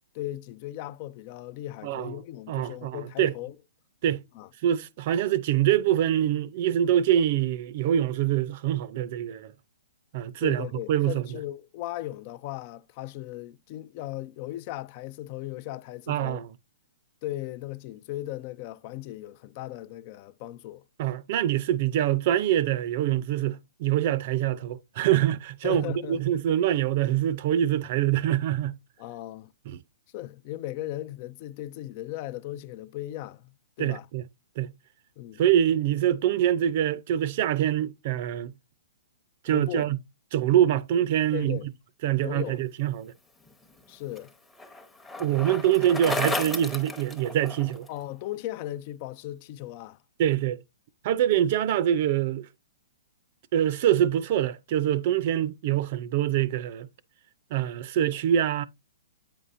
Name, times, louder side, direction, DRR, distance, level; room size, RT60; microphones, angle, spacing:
voice 1, 0.1-3.6 4.3-4.5 10.4-16.4 17.2-20.8 25.6-26.2 29.0-29.5 30.1-33.5 33.8-34.1 35.2-35.4 39.5-39.9 41.3-41.7 42.2-42.6 43.9-44.3 45.2-45.5 47.9-50.0, left 15 dB, 35° left, 0.4 m, -37 dB
voice 2, 1.8-2.2 2.5-3.3 4.0-4.2 4.6-9.5 10.1-11.4 16.1-16.5 21.0-28.8 29.7-29.8 33.8-34.2 34.6-34.7 35.4-38.5 39.4-40.0 40.3-41.6 42.0-43.1 45.2-47.9 50.2-50.6 51.0-52.5 53.5-56.9 57.5-58.7, right 11 dB, 45° right, 0.5 m, -25 dB
Bicycle, 43.5-47.9, left 2 dB, 10° left, 0.9 m, -34 dB
8.8 x 5.5 x 2.5 m
hypercardioid pair, 145°, 0 cm